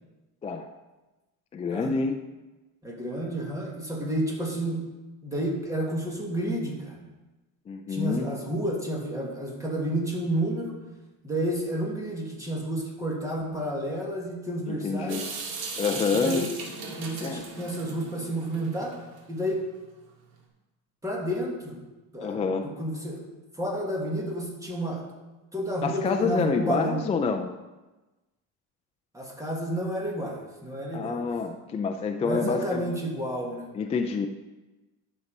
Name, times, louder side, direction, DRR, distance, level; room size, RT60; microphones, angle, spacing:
voice 1, 1.5-2.2 7.7-8.3 14.7-15.3 15.8-16.5 17.2-17.5 22.2-22.7 25.8-27.5 30.9-32.9 33.7-34.3, left 4 dB, 15° left, 5 dB, 0.3 m, -27 dB
voice 2, 2.8-4.8 5.2-7.0 7.9-10.8 11.2-15.2 16.1-16.5 16.9-18.9 19.3-19.6 21.0-21.8 22.1-23.2 23.6-25.0 25.5-27.0 29.1-31.2 32.2-33.7, right 1 dB, 10° right, -2 dB, 1.7 m, -30 dB
Water tap faucet / Sink (filling or washing) / Drip, 15.1-19.2, right 4 dB, 70° right, 2.3 m, -38 dB
11.0 x 6.6 x 5.3 m, 1.1 s
cardioid pair, 165°, 38 cm